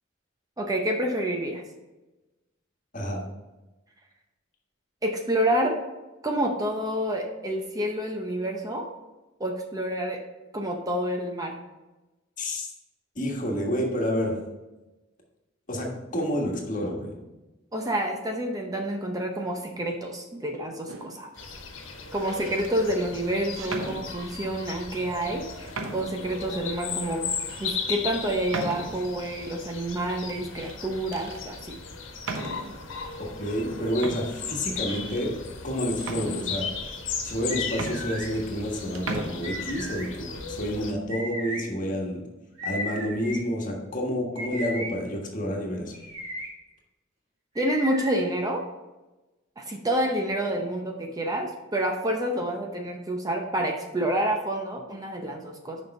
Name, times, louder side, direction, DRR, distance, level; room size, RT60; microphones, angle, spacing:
voice 1, 0.6-1.6 5.0-5.8 6.2-8.9 9.4-10.2 10.5-11.6 17.7-21.3 22.1-27.3 27.6-31.8 47.5-48.7 49.6-55.8, right 1 dB, 20° right, 2 dB, 0.7 m, -28 dB
voice 2, 12.4-12.7 13.1-14.4 15.7-17.1 33.4-35.4 35.6-36.7 37.2-42.2 42.6-45.9, equal, 40° left, 0 dB, 1.5 m, -29 dB
sound 1, 20.9-21.3 22.1-22.7 23.6-24.5 25.2-25.3 25.7-26.3 26.8-26.9 27.5-27.7 28.5-29.2 30.3-30.8 31.1-31.4 32.2-32.9 33.6-33.7 34.0-35.3 36.0-36.8 37.4-37.5 37.7-38.7 38.9-39.3, right 2 dB, 80° right, 1.0 m, -37 dB
sound 2, 21.4-40.9, left 5 dB, 75° left, 1.3 m, -36 dB
sound 3, 37.5-38.3 39.4-40.1 41.1-41.6 42.6-43.4 44.4-44.9 45.9-46.5 47.6-48.1, left 1 dB, 35° right, 2.0 m, -35 dB
6.6 x 5.3 x 5.3 m, 1.1 s
head